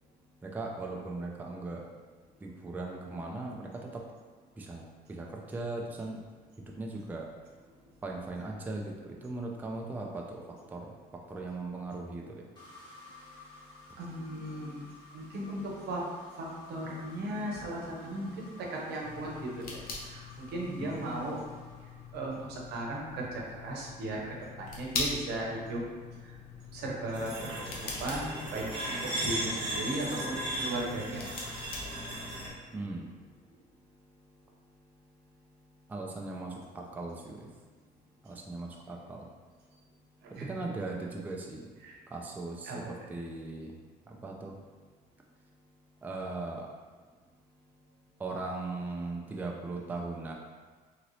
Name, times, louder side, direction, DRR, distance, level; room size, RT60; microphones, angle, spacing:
voice 1, 0.4-1.8 2.4-4.0 4.6-6.2 6.8-7.3 8.0-10.9 11.3-12.4 20.8-20.9 32.7-33.1 35.9-37.5 38.2-39.3 40.4-41.6 42.1-43.8 44.1-44.6 46.0-46.7 48.2-50.3, right 2 dB, 10° right, -1 dB, 0.3 m, -38 dB
sound 1, 12.6-22.5, left 3 dB, 25° left, 1.0 m, -54 dB
voice 2, 14.0-14.9 15.1-16.0 16.4-19.8 20.1-21.4 22.1-23.3 23.5-24.2 24.6-25.8 26.7-27.3 27.7-27.8 28.0-31.3 40.4-40.5 41.8-42.0 42.6-42.8, right 1 dB, 75° right, -2 dB, 0.8 m, -36 dB
sound 2, 19.0-32.6, left 3 dB, 60° left, 0.7 m, -43 dB
sound 3, 27.1-32.5, right 1 dB, 30° right, 1.0 m, -36 dB
2.9 x 2.6 x 3.0 m, 1.5 s
cardioid pair, 110°, 17 cm